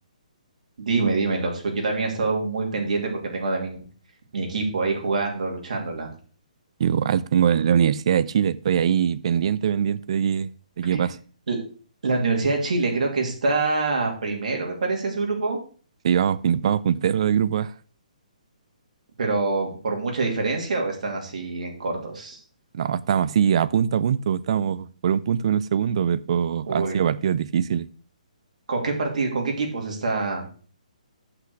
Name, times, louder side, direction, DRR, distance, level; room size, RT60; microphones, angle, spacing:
voice 1, 0.8-3.8 4.3-6.1 10.9-11.0 11.5-11.6 12.0-15.6 19.2-22.4 26.6-27.1 28.7-30.5, right 3 dB, 65° right, 2.9 m, -25 dB
voice 2, 6.8-10.5 10.8-11.1 16.0-17.7 22.7-27.9, right 8 dB, 45° right, 0.5 m, -22 dB
7.8 x 5.9 x 6.3 m
hypercardioid pair, 160°, 4 cm